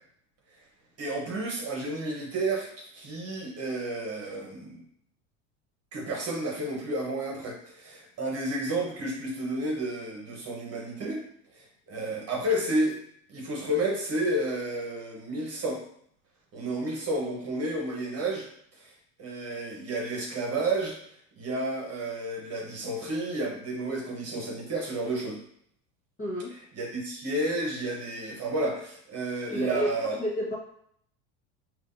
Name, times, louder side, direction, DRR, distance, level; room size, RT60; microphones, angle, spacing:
voice 1, 1.0-2.7 2.9-4.8 5.9-11.2 11.9-13.0 13.3-15.8 16.5-18.5 18.8-18.9 19.2-21.0 21.4-25.4 26.7-30.2, right 1 dB, 35° right, -1 dB, 1.2 m, -31 dB
voice 2, 26.2-26.5 29.5-30.6, equal, 20° left, -5 dB, 1.2 m, -30 dB
5.1 x 3.1 x 2.7 m, 0.67 s
supercardioid pair, 130°, 42 cm